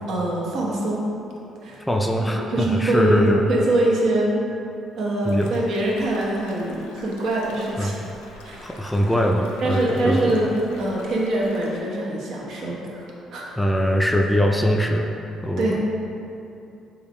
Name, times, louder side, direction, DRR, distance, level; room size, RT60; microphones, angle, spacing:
voice 1, 0.1-1.1 1.6-1.8 2.4-4.4 4.9-8.0 8.4-8.8 9.6-13.5 15.6-15.8, right 1 dB, 70° right, -3 dB, 0.6 m, -23 dB
voice 2, 1.9-3.4 5.2-5.5 7.8-7.9 8.6-10.2 13.6-15.1 15.4-15.8, equal, 10° left, 2 dB, 0.3 m, -22 dB
sound 1, 5.2-11.8, left 2 dB, 90° left, 0.3 m, -44 dB
3.6 x 2.3 x 3.4 m, 2.8 s
supercardioid pair, 60°, 0 cm